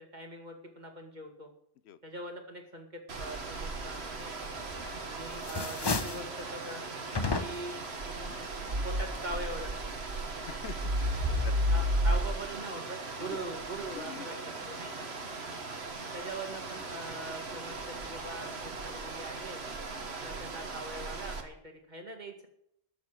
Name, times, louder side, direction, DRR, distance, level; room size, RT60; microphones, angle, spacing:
voice 1, 0.0-1.5 2.0-4.5 5.1-6.8 7.4-7.8 8.0-8.5 8.8-9.9 11.7-14.4 14.7-15.1 16.1-19.6 20.1-22.5, right 2 dB, 45° right, 3 dB, 2.2 m, -42 dB
sound 1, 3.1-21.4, right 1 dB, 75° right, 1.7 m, -35 dB
sound 2, 4.6-5.0 5.3-6.3 7.1-7.8, left 4 dB, 25° left, 0.6 m, -33 dB
voice 2, 10.5-11.6 13.2-13.4 13.9-14.3 14.6-15.2 19.9-20.1, left 10 dB, 80° left, 14 dB, 0.9 m, -47 dB
13.0 x 7.4 x 7.5 m, 0.73 s
omnidirectional pair, 1.1 m